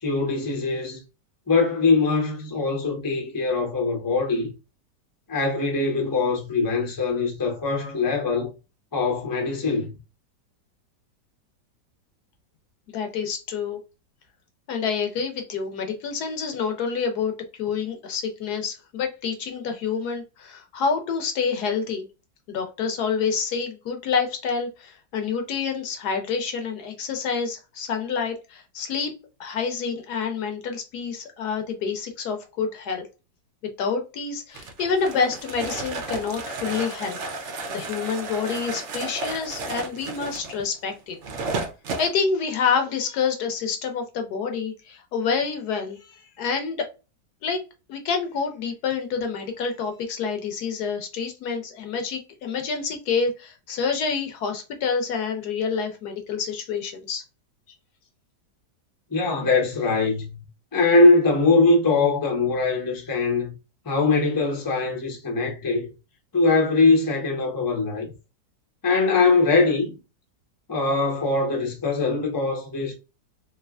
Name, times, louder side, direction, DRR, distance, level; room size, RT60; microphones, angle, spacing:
voice 1, 0.0-1.0 1.5-4.5 5.3-8.5 8.9-9.9 59.1-60.4 60.7-63.5 63.8-65.9 66.3-68.1 68.8-69.9 70.7-72.9, left 3 dB, 25° left, 0.5 m, -22 dB
voice 2, 12.9-13.8 14.7-17.3 17.6-22.1 22.5-29.1 29.4-33.1 33.8-37.2 37.4-41.2 42.0-46.1 46.4-46.9 47.4-47.6 47.9-57.2, left 5 dB, 70° left, 1.2 m, -27 dB
sound 1, 34.5-42.1, right 3 dB, 60° right, 0.8 m, -33 dB
3.2 x 2.9 x 2.3 m
omnidirectional pair, 1.9 m